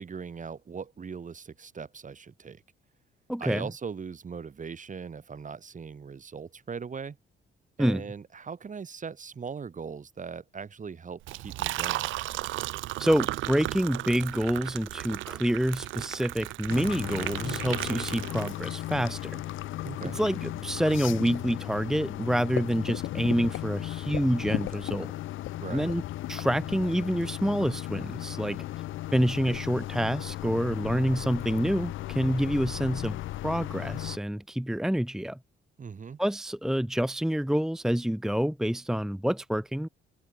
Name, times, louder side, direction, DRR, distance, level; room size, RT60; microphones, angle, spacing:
voice 1, 0.0-2.6 3.4-7.2 7.8-12.1 19.8-20.2 25.6-25.9 35.8-36.2, right 6 dB, 40° right, 4.8 m, -39 dB
voice 2, 3.3-3.7 7.8-8.0 13.0-19.4 20.0-25.1 25.7-26.0 26.3-28.6 29.1-33.2 33.4-35.4 36.2-39.9, equal, ahead, 1.0 m, -27 dB
Liquid, 11.2-18.9, right 17 dB, 80° right, 0.5 m, -35 dB
sound 1, 16.7-34.2, left 15 dB, 85° left, 2.0 m, -36 dB
cardioid pair, 90°, 20 cm